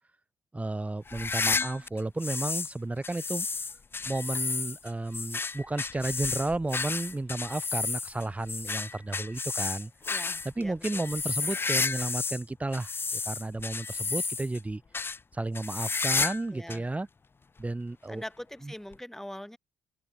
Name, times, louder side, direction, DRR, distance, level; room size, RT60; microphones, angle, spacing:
voice 1, 0.5-3.5 4.1-9.9 10.6-14.8 15.3-17.1 17.6-18.2 18.6-18.7, right 2 dB, 20° right, 3.7 m, -33 dB
sound 1, 1.1-2.7 3.0-12.4 12.7-14.6 14.9-15.2 15.5-16.4 16.7-16.8 17.6-17.7 18.9-19.0, left 4 dB, 30° left, 0.9 m, -32 dB
voice 2, 10.1-11.1 16.5-16.9 18.1-19.6, left 1 dB, 5° left, 3.9 m, -42 dB
hypercardioid pair, 50°, 8 cm